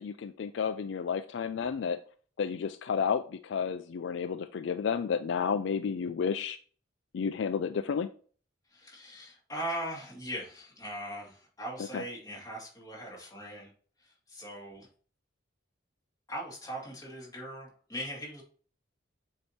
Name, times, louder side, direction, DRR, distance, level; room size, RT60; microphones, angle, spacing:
voice 1, 0.0-2.0 2.4-6.6 7.1-8.1 11.9-12.0, left 6 dB, 60° left, 10 dB, 0.3 m, -31 dB
voice 2, 8.7-13.7 14.0-14.9 16.3-18.4, equal, 15° left, -4 dB, 2.3 m, -40 dB
7.7 x 2.8 x 4.3 m, 0.42 s
head